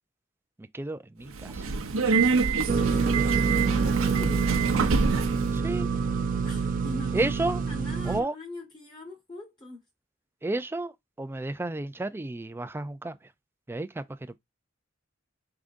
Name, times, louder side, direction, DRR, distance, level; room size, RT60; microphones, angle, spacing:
voice 1, 0.6-1.6 5.5-5.9 7.1-7.6 8.0-8.3 10.4-13.1 13.7-14.0, right 2 dB, 10° right, 0.4 m, -32 dB
Subway metro underground, 1.3-5.5, right 4 dB, 80° right, 0.7 m, -26 dB
voice 2, 2.7-4.4 6.4-9.8, left 1 dB, 25° left, 1.4 m, -42 dB
sound 1, 2.7-8.2, right 5 dB, 40° right, 0.7 m, -26 dB
4.8 x 3.7 x 2.5 m
head